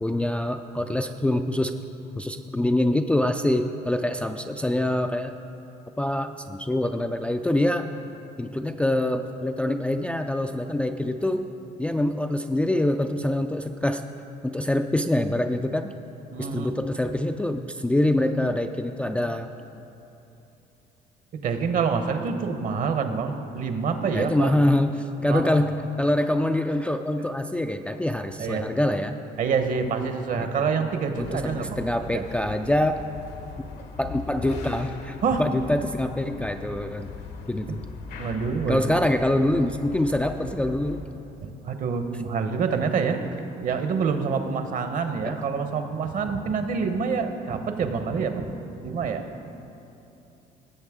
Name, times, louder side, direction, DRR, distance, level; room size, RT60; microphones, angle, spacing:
voice 1, 0.0-1.8 2.2-5.3 6.0-7.9 8.4-11.5 11.8-14.0 14.4-15.9 16.4-19.5 24.1-29.2 30.4-30.7 31.2-33.0 34.0-37.1 37.5-37.8 38.7-41.0 45.2-45.4, left 1 dB, 5° left, 5 dB, 0.3 m, -25 dB
voice 2, 16.3-16.7 21.4-24.5 25.3-25.5 28.4-28.7 29.4-31.8 32.1-32.2 35.2-35.4 38.2-39.0 41.4-48.5 48.8-49.5, right 5 dB, 50° right, 7 dB, 0.9 m, -27 dB
sound 1, 31.2-41.0, left 4 dB, 75° left, 1.1 m, -40 dB
17.5 x 7.4 x 3.7 m, 2.9 s
cardioid pair, 110°, 17 cm